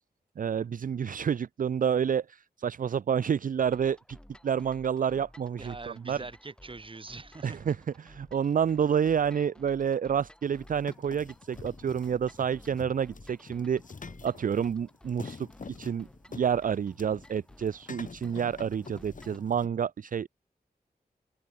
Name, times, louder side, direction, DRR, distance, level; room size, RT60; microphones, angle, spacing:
voice 1, 0.4-4.2 4.4-6.2 7.4-13.8 14.2-15.5 15.8-20.3, right 8 dB, 55° right, 0.4 m, -29 dB
sound 1, 3.6-19.5, equal, 5° left, 1.5 m, -55 dB
voice 2, 5.6-7.6, right 3 dB, 35° right, 1.0 m, -43 dB
sound 2, 10.4-19.7, left 4 dB, 55° left, 1.4 m, -47 dB
open air
wide cardioid pair, 65°, 16 cm